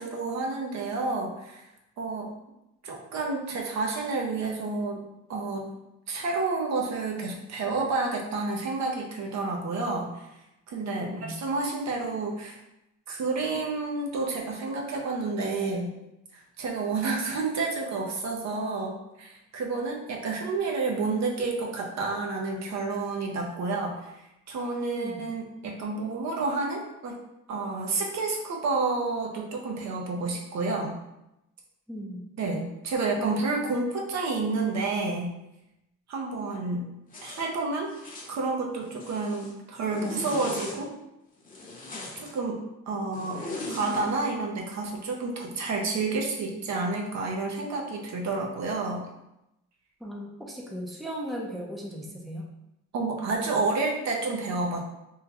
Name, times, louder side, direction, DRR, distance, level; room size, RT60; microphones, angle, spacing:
voice 1, 0.0-1.6 2.0-2.3 2.8-5.0 5.3-5.7 6.1-10.3 10.7-12.6 13.1-15.9 16.3-27.2 27.5-30.9 32.4-35.3 36.1-36.9 37.2-37.9 38.3-40.9 42.2-43.4 43.7-49.0 52.9-54.8, right 3 dB, 65° right, 0 dB, 0.7 m, -30 dB
voice 2, 11.0-11.4 25.0-25.2 31.9-32.2 50.0-52.4, equal, ahead, -1 dB, 0.5 m, -37 dB
Zipper (clothing), 37.1-37.4 37.9-38.3 38.8-39.5 39.9-40.8 41.4-42.3 43.1-44.1, left 1 dB, 25° left, 0.9 m, -38 dB
3.6 x 2.2 x 2.9 m, 0.90 s
cardioid pair, 90°, 30 cm